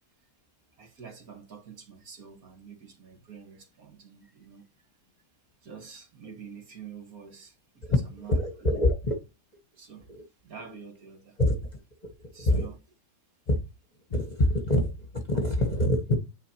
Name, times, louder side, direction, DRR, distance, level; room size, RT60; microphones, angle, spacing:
voice 1, 0.8-4.6 5.6-7.6 7.9-8.8 9.8-10.1 10.4-11.4 12.3-12.8, right 6 dB, 60° right, 2.1 m, -47 dB
voice 2, 7.9-9.1 10.1-10.2 11.4-11.6 12.0-12.7 13.5-13.6 14.1-16.2, left 1 dB, 30° left, 1.0 m, -25 dB
9.3 x 4.4 x 2.9 m
omnidirectional pair, 1.7 m